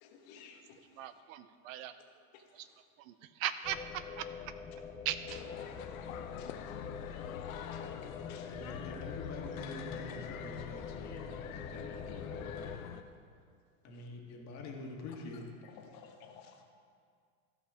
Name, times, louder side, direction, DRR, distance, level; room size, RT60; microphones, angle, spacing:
voice 1, 0.0-0.8 6.4-6.5 7.7-7.8 8.3-8.5 15.8-16.6, left 6 dB, 60° left, 4 dB, 1.4 m, -54 dB
voice 2, 1.0-1.9 2.5-2.7 3.0-3.8 4.2-4.3 5.0-5.4, right 12 dB, 75° right, 12 dB, 0.7 m, -38 dB
sound 1, 3.6-12.8, left 5 dB, 15° left, 0.3 m, -45 dB
sound 2, 5.3-13.0, left 9 dB, 85° left, 0.8 m, -46 dB
voice 3, 8.5-12.8 13.8-15.5, left 3 dB, 40° left, 0 dB, 2.0 m, -46 dB
15.0 x 5.6 x 4.9 m, 2.1 s
supercardioid pair, 115°, 40 cm